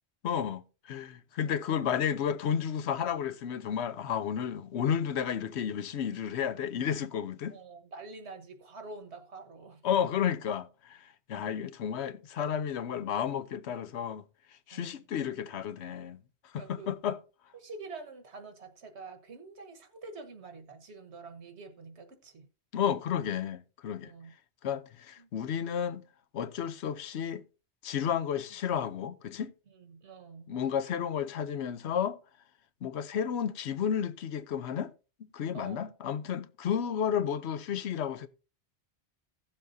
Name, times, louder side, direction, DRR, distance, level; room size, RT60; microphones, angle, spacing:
voice 1, 0.2-7.6 9.8-14.2 14.7-16.2 16.5-17.2 22.7-24.1 24.6-26.0 26.3-27.4 27.8-29.5 30.5-32.2 32.8-34.9 35.3-38.3, left 8 dB, 80° left, 0.9 m, -32 dB
voice 2, 7.5-9.8 14.7-15.1 16.6-16.9 17.5-22.5 24.0-24.3 25.2-25.3 29.7-30.5 35.5-35.9, right 3 dB, 80° right, 1.6 m, -47 dB
16.0 x 7.2 x 2.6 m
omnidirectional pair, 1.1 m